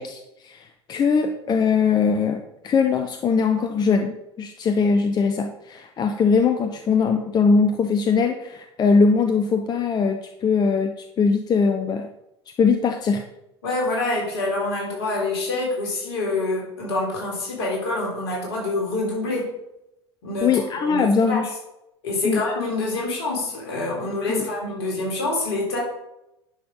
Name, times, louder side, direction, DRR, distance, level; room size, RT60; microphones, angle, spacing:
voice 1, 0.0-12.1 12.6-13.2 20.4-21.5 22.2-22.4 24.3-24.5, left 5 dB, 30° left, 6 dB, 0.8 m, -21 dB
voice 2, 13.6-19.5 20.2-21.4 22.0-25.8, left 2 dB, 60° left, -1 dB, 3.9 m, -26 dB
10.5 x 5.9 x 5.2 m, 0.88 s
figure-of-eight pair, 75°, 14 cm